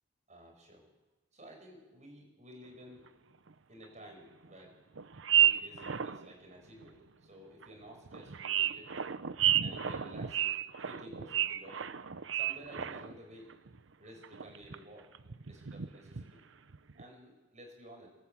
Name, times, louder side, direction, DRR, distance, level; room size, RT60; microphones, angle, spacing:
voice 1, 0.3-0.8 1.3-3.1 3.7-4.8 5.3-9.1 9.6-10.6 10.8-13.5 14.0-15.1 15.5-16.4 16.9-18.1, equal, 40° right, 2 dB, 7.3 m, -53 dB
sound 1, 3.1-3.2 3.5-3.6 4.5-4.6 5.0-6.3 6.8-6.9 7.6-7.7 8.1-13.3 13.5-13.8 14.2-14.8 15.2-16.3 16.7-17.0, right 10 dB, 80° right, 0.8 m, -32 dB
28.5 x 13.0 x 8.6 m, 1.1 s
head